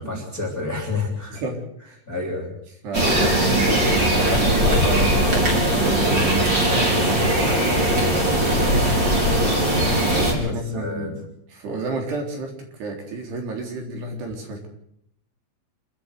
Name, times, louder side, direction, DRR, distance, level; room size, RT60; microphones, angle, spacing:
voice 1, 0.0-1.4 2.1-2.5 10.4-11.1, left 3 dB, 20° left, 1 dB, 3.0 m, -29 dB
voice 2, 2.8-8.2 9.9-11.2 11.5-14.7, right 2 dB, 60° right, 2 dB, 5.6 m, -31 dB
sound 1, 2.9-10.3, right 1 dB, 20° right, 4.8 m, -19 dB
26.5 x 13.5 x 8.1 m, 0.72 s
omnidirectional pair, 5.7 m